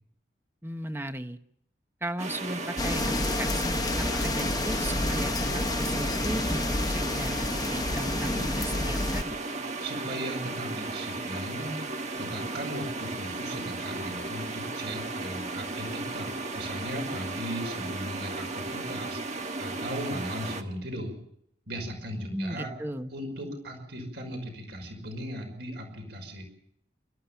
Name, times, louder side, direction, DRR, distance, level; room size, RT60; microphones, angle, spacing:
voice 1, 0.6-1.4 2.0-6.6 6.9-9.4 22.3-23.1, right 1 dB, 10° right, 8 dB, 1.1 m, -37 dB
sound 1, 2.2-20.6, right 3 dB, 35° right, 1.4 m, -35 dB
sound 2, 2.8-9.2, left 2 dB, 20° left, 0.9 m, -29 dB
voice 2, 9.8-11.8 12.2-21.2 21.7-22.7 23.1-26.4, equal, 65° right, 3 dB, 5.6 m, -37 dB
29.0 x 13.5 x 7.2 m, 0.74 s
head